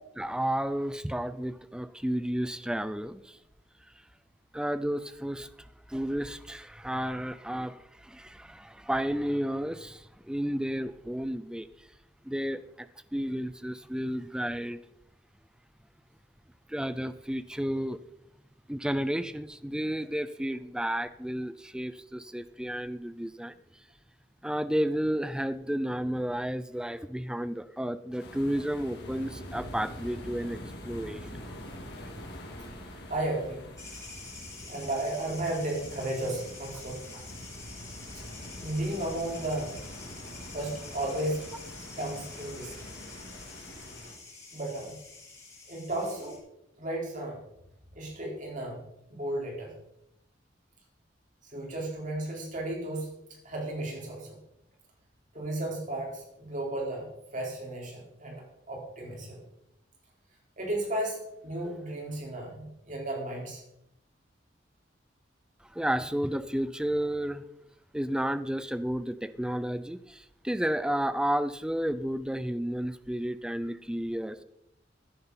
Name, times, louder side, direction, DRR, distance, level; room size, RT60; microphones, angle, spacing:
voice 1, 0.2-3.4 4.5-5.5 5.9-11.7 12.2-14.8 16.7-18.0 18.7-23.5 24.4-31.3 65.7-67.4 67.9-74.4, equal, 5° right, 13 dB, 0.5 m, -32 dB
sound 1, 28.2-44.1, equal, 60° left, 3.1 m, -44 dB
voice 2, 33.1-33.6 34.7-37.0 38.6-39.8 40.5-41.4 42.0-42.9 44.5-45.0 45.7-46.4 46.8-47.4 47.9-48.8 49.1-49.7 51.5-53.1 53.4-54.4 55.3-57.1 57.3-58.4 58.7-59.4 60.6-63.6, right 1 dB, 45° right, -2 dB, 4.7 m, -34 dB
sound 2, 33.8-46.4, left 3 dB, 15° left, 6.6 m, -47 dB
16.0 x 10.5 x 4.3 m, 0.80 s
head